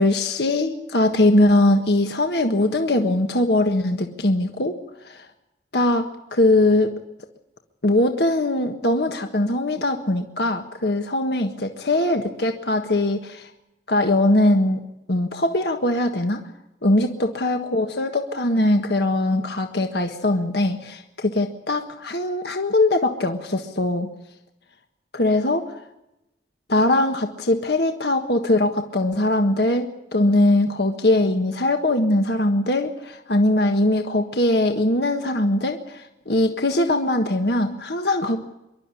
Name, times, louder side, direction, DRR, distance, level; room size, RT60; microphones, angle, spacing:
voice 1, 0.0-4.8 5.0-5.3 5.7-6.9 7.8-13.5 13.9-14.8 15.1-16.4 16.8-24.1 25.1-25.7 26.7-38.4, left 1 dB, 60° left, 5 dB, 1.6 m, -21 dB
25.5 x 12.5 x 9.9 m, 0.92 s
head